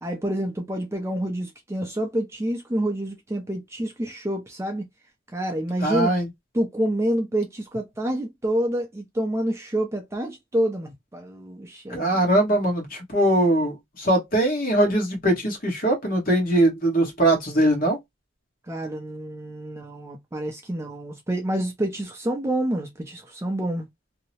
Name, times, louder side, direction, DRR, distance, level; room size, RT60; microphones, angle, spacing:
voice 1, 0.0-4.9 5.3-6.1 6.5-12.2 18.6-23.9, right 1 dB, 15° right, 0.4 m, -28 dB
voice 2, 5.8-6.3 11.9-18.0, right 1 dB, 45° left, 1.1 m, -21 dB
2.7 x 2.0 x 2.8 m
head